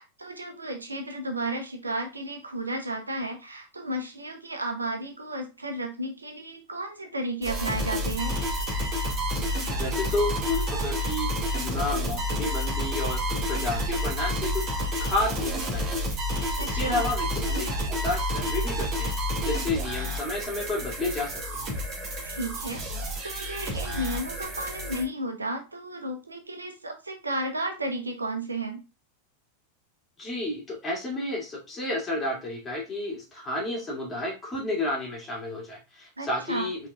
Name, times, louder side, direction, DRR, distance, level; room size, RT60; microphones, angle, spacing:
voice 1, 0.0-8.3 16.6-17.1 22.2-22.8 23.2-28.8 36.2-36.7, right 1 dB, 80° right, 4 dB, 0.8 m, -33 dB
sound 1, 7.4-25.0, equal, 35° right, 1.9 m, -29 dB
voice 2, 9.7-14.6 15.0-16.2 16.6-19.1 19.4-21.7 30.2-36.8, left 2 dB, 20° left, -3 dB, 2.2 m, -31 dB
5.2 x 3.7 x 2.4 m, 0.30 s
figure-of-eight pair, 90°, 0 cm